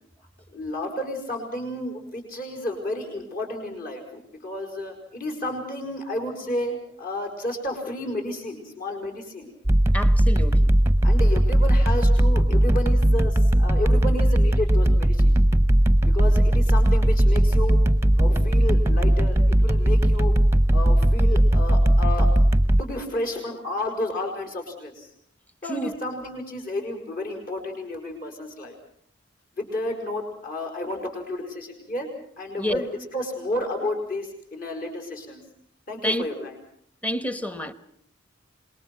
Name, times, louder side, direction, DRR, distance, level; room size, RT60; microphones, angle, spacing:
voice 1, 0.5-9.5 11.0-15.4 16.0-17.8 18.2-20.3 20.7-22.3 22.8-25.1 25.6-28.8 29.6-32.1 32.4-35.4 35.9-36.6, left 1 dB, 45° left, 5.2 m, -31 dB
sound 1, 9.7-22.8, right 1 dB, 15° right, 0.8 m, -18 dB
voice 2, 9.9-10.7 25.7-25.9 32.6-32.8 36.0-36.2 37.0-37.7, equal, 10° left, 1.1 m, -28 dB
27.0 x 21.5 x 6.0 m
head